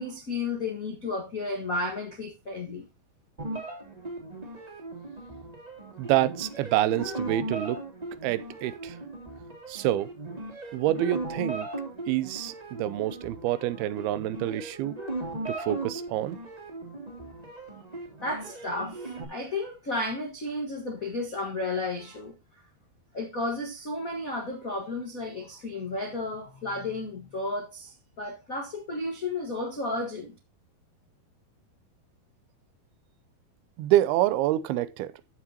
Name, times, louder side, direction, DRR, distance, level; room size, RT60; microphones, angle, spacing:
voice 1, 0.0-2.9 18.2-22.3 23.1-30.4, left 2 dB, 80° left, 0.7 m, -33 dB
sound 1, 3.4-19.2, right 2 dB, 10° right, 2.4 m, -38 dB
voice 2, 6.0-7.8 8.2-9.0 9.7-10.1 10.7-11.7 12.1-15.0 15.5-16.4 33.8-35.2, right 14 dB, 85° right, 2.5 m, -27 dB
14.0 x 6.1 x 2.9 m
omnidirectional pair, 4.4 m